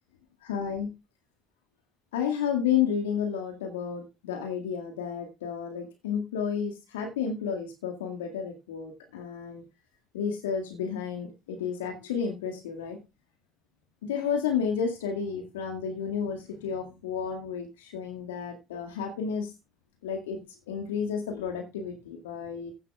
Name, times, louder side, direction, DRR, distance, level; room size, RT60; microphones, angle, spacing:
voice 1, 0.4-0.9 2.1-9.6 10.1-13.0 14.0-19.5 20.0-20.4 20.7-22.7, left 7 dB, 75° left, 4 dB, 2.0 m, -31 dB
15.0 x 10.5 x 2.3 m, 0.25 s
figure-of-eight pair, 55°, 0 cm